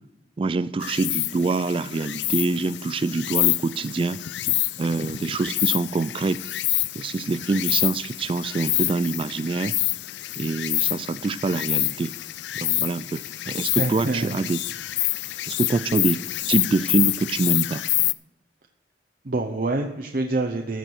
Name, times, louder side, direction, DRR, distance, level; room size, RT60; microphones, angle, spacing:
voice 1, 0.4-4.2 4.8-6.4 6.9-9.8 10.4-12.1 12.5-14.6 15.5-16.2 16.5-17.8, right 3 dB, 30° right, 15 dB, 0.3 m, -25 dB
Insect, 0.8-18.1, left 17 dB, 80° left, 0.4 m, -27 dB
voice 2, 13.8-14.4 19.2-20.8, right 2 dB, 50° right, 3 dB, 0.8 m, -26 dB
14.5 x 6.0 x 6.3 m, 0.92 s
head